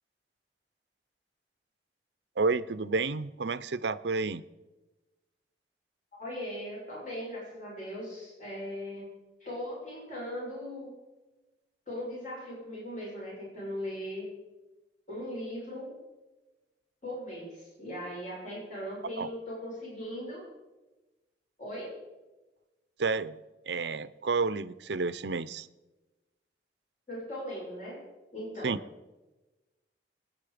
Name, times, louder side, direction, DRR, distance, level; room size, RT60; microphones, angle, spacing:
voice 1, 2.4-4.4 19.2-19.3 23.0-23.4 23.7-25.7 28.6-28.8, right 4 dB, 75° right, 16 dB, 0.6 m, -30 dB
voice 2, 6.1-9.1 9.4-10.9 11.9-14.3 15.1-15.9 17.0-20.4 21.6-21.9 27.1-28.0 28.3-28.8, equal, 45° left, -5 dB, 6.6 m, -39 dB
25.5 x 9.6 x 5.0 m, 1.1 s
head